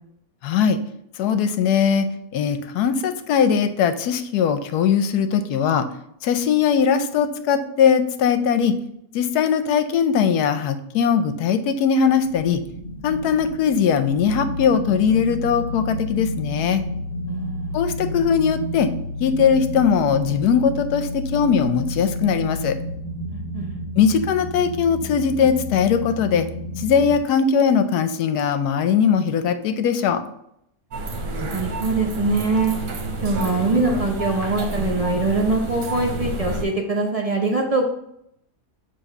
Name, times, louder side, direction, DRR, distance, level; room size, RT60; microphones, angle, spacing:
voice 1, 0.4-0.8 1.2-2.1 2.3-5.9 6.2-8.7 9.1-12.6 13.0-16.8 17.7-18.9 19.2-22.8 24.0-26.5 26.8-30.2, left 7 dB, 75° left, 10 dB, 1.1 m, -20 dB
sound 1, 12.2-27.2, left 1 dB, 50° left, 1.3 m, -31 dB
voice 2, 17.3-17.8 23.3-23.8 31.3-32.7 33.2-37.9, right 3 dB, 40° right, 0 dB, 0.5 m, -23 dB
sound 2, 30.9-36.7, right 2 dB, 70° right, 1.3 m, -29 dB
7.0 x 2.9 x 5.3 m, 0.75 s
omnidirectional pair, 1.8 m